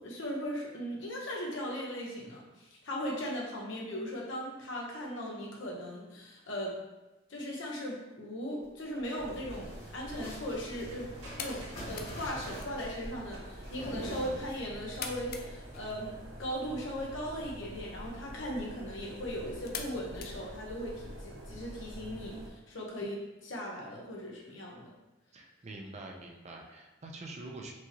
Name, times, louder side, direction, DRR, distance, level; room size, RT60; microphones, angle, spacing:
voice 1, 0.0-6.8 7.3-11.1 11.4-24.9, equal, 70° left, -3 dB, 1.0 m, -38 dB
sound 1, 8.8-14.9, equal, 35° left, 1.5 m, -45 dB
sound 2, 9.2-22.5, equal, 85° right, 0.8 m, -46 dB
sound 3, 11.1-21.2, left 6 dB, 55° left, 0.4 m, -49 dB
voice 2, 25.3-27.7, right 2 dB, 35° right, 1 dB, 0.5 m, -45 dB
4.5 x 2.8 x 2.9 m, 1.0 s
head